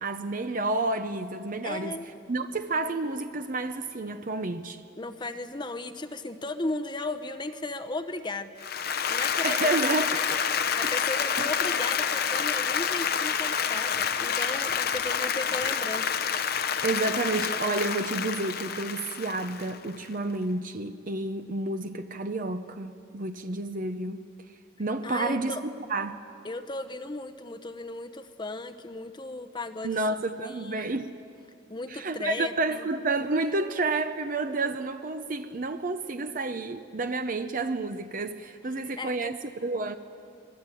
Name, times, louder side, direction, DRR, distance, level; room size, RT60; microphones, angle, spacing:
voice 1, 0.0-2.0 2.3-4.8 9.4-10.4 10.8-10.9 16.8-24.2 24.8-26.2 29.8-31.1 31.9-40.0, right 2 dB, 40° right, 0.7 m, -30 dB
voice 2, 1.6-2.1 5.0-8.5 9.1-10.2 10.7-16.1 25.0-25.6 26.4-30.0 30.4-30.9 31.7-32.9 39.0-39.3, left 2 dB, 25° left, 0.8 m, -35 dB
Applause, 8.6-19.9, left 7 dB, 50° left, 0.9 m, -28 dB
27.0 x 20.5 x 9.1 m
head